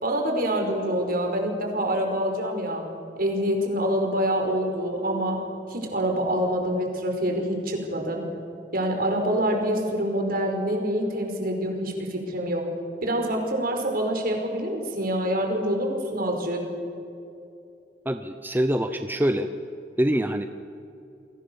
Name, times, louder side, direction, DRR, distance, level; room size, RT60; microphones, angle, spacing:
voice 1, 0.0-2.9 3.2-5.4 5.7-8.2 8.7-12.7 13.0-16.6, equal, 55° right, 3 dB, 5.1 m, -26 dB
voice 2, 18.0-19.5 20.0-20.5, equal, 10° right, 8 dB, 0.8 m, -24 dB
30.0 x 21.0 x 7.1 m, 2.6 s
head